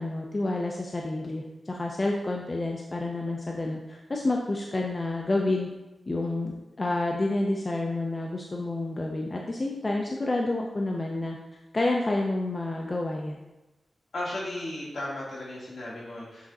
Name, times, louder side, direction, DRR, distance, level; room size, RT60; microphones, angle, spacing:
voice 1, 0.0-5.7 6.1-11.4 11.7-13.4, left 2 dB, 30° left, 0 dB, 0.5 m, -29 dB
voice 2, 14.1-16.5, left 1 dB, 65° left, -5 dB, 2.3 m, -35 dB
7.4 x 3.7 x 4.1 m, 1.0 s
wide cardioid pair, 115°, 0 cm